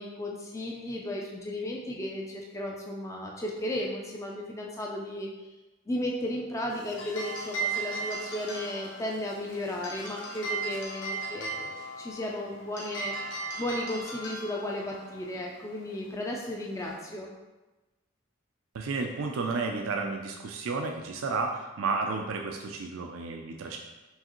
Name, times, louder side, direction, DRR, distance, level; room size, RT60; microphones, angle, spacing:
voice 1, 0.0-5.3 5.9-17.3, left 1 dB, 15° left, -1 dB, 0.4 m, -35 dB
sound 1, 6.7-17.1, right 3 dB, 65° left, 0.9 m, -38 dB
voice 2, 18.7-23.8, right 4 dB, 85° right, 2 dB, 0.4 m, -32 dB
4.6 x 3.3 x 3.0 m, 1.1 s
head